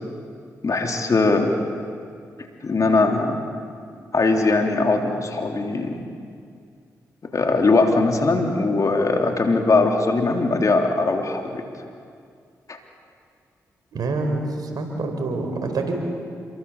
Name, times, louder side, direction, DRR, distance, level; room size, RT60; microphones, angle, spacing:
voice 1, 0.6-1.5 2.6-3.4 4.1-6.0 7.3-11.6 12.7-12.8, left 3 dB, 55° left, 3 dB, 3.6 m, -20 dB
voice 2, 13.9-16.0, right 3 dB, 70° right, 4 dB, 4.5 m, -26 dB
28.5 x 23.5 x 7.4 m, 2.2 s
supercardioid pair, 45°, 7 cm